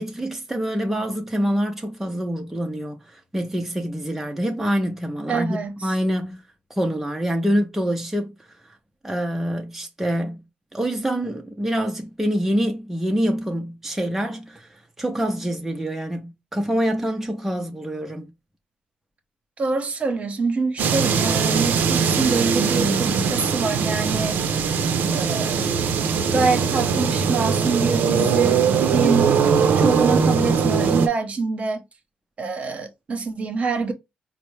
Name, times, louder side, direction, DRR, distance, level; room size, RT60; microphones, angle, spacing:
voice 1, 0.0-6.4 6.7-8.3 9.0-10.4 10.7-18.3, equal, 10° right, 0.6 m, -26 dB
voice 2, 5.3-5.9 19.6-24.4 25.1-26.0 26.3-29.4 29.8-31.8 32.4-33.9, right 4 dB, 40° right, 0.9 m, -25 dB
sound 1, 20.8-31.1, right 6 dB, 65° right, 0.5 m, -21 dB
4.2 x 2.0 x 3.2 m
cardioid pair, 90°, 3 cm